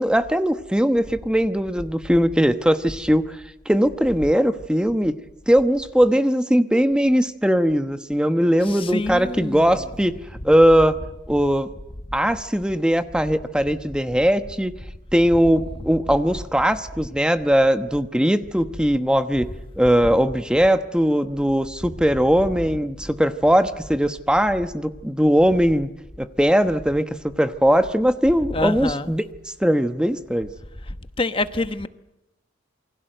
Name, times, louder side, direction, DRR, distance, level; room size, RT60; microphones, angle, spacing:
voice 1, 0.0-5.1 5.5-10.1 10.4-10.9 11.3-11.7 12.1-14.7 15.1-19.5 19.8-25.9 26.2-30.5, equal, 5° right, 1.1 m, -20 dB
voice 2, 8.6-10.0 10.4-10.5 15.3-15.6 20.0-20.2 28.5-29.1 30.9-31.9, left 2 dB, 30° left, 1.2 m, -28 dB
28.5 x 24.5 x 7.9 m
head